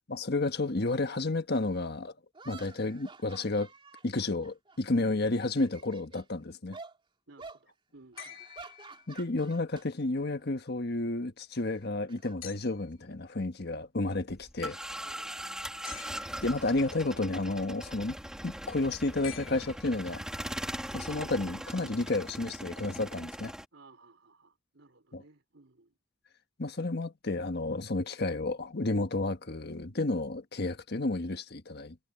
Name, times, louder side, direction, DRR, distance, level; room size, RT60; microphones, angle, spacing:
voice 1, 0.1-2.1 2.4-3.7 4.0-6.8 9.1-14.8 16.4-18.2 18.4-20.2 20.9-23.5 25.1-25.2 26.6-32.0, left 2 dB, 55° left, 1.4 m, -31 dB
sound 1, 1.5-1.6 2.3-5.0 5.3-6.3 6.7-7.0 7.4-7.6 8.1-9.9 10.2-10.4 11.6-13.1, right 4 dB, 25° right, 3.0 m, -50 dB
voice 2, 7.3-8.4 15.0-15.3 23.7-25.9, right 3 dB, 80° right, 4.1 m, -58 dB
sound 2, 8.2-9.5 12.4-13.0 15.8-16.6 19.2-20.3 21.9-22.0, left 12 dB, 80° left, 3.9 m, -48 dB
sound 3, 14.3-23.6, equal, 5° right, 2.7 m, -40 dB
head